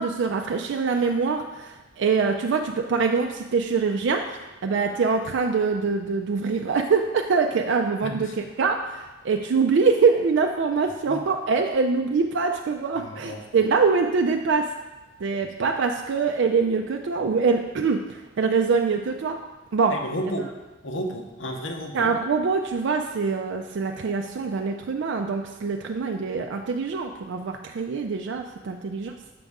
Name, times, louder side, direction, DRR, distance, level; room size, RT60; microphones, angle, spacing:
voice 1, 0.0-14.7 15.2-19.4 19.7-19.9 21.9-29.1, right 5 dB, 60° right, 4 dB, 0.4 m, -24 dB
voice 2, 8.0-8.3 11.1-11.2 13.0-13.7 19.9-20.5 20.8-22.1, equal, 70° left, 3 dB, 0.9 m, -32 dB
6.8 x 5.3 x 3.6 m, 1.1 s
head